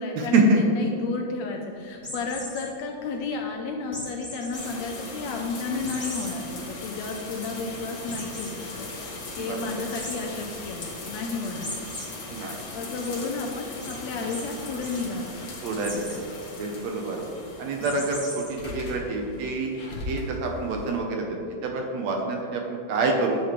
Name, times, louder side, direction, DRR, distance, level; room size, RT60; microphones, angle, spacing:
voice 1, 0.0-11.7 12.4-15.5, left 4 dB, 80° left, 2 dB, 1.7 m, -32 dB
Cat Toy, 2.0-2.7 3.9-4.6 5.1-5.2 5.8-6.3 6.8-6.9 7.2-7.3 8.1-8.5 9.9-10.1 11.6-12.0 12.5-13.1 13.8-13.9 14.3-14.4 14.7-15.0 15.8-16.2 17.8-18.5, left 1 dB, 15° left, 1.5 m, -37 dB
sound 1, 4.5-21.0, left 2 dB, 55° left, 1.0 m, -39 dB
voice 2, 15.6-16.3 16.6-17.3 17.6-19.8 20.1-23.4, right 3 dB, 70° right, 1 dB, 1.9 m, -26 dB
10.0 x 7.1 x 3.1 m, 2.6 s
omnidirectional pair, 3.5 m